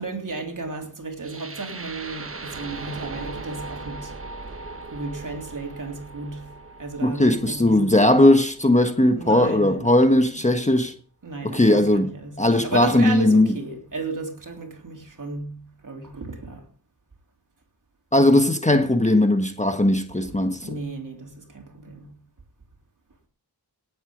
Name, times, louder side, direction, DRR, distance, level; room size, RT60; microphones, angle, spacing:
voice 1, 0.0-4.2 4.5-8.0 9.2-10.4 11.2-16.7 20.2-20.3 20.6-22.2, right 3 dB, 50° right, 3.4 m, -34 dB
sound 1, 1.2-9.3, right 3 dB, 30° right, 1.3 m, -39 dB
voice 2, 7.0-10.9 11.4-12.1 12.4-13.5 18.1-20.7, left 1 dB, 15° left, 1.3 m, -18 dB
18.0 x 8.3 x 5.1 m
wide cardioid pair, 80°, 41 cm